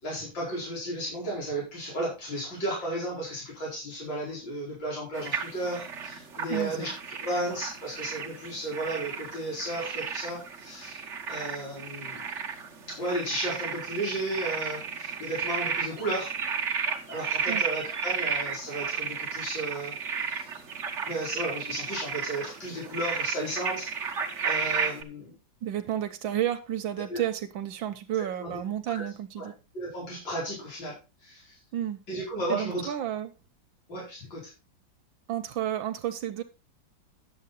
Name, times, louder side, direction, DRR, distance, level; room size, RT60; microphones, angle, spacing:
voice 1, 0.0-6.9 7.2-12.2 12.9-16.3 17.1-19.9 20.2-20.5 21.1-23.9 24.4-25.3 27.1-27.2 28.4-28.6 28.9-29.0 29.4-29.5 29.7-31.6 32.1-32.9 33.9-34.5, right 1 dB, 70° left, -5 dB, 5.6 m, -34 dB
sound 1, 5.1-25.0, right 6 dB, 40° right, 1.4 m, -33 dB
voice 2, 6.5-6.9 17.5-17.6 25.6-29.5 31.7-32.0 32.5-33.3 35.3-36.4, right 11 dB, 85° right, 7 dB, 1.6 m, -31 dB
10.5 x 7.7 x 4.1 m, 0.28 s
omnidirectional pair, 2.1 m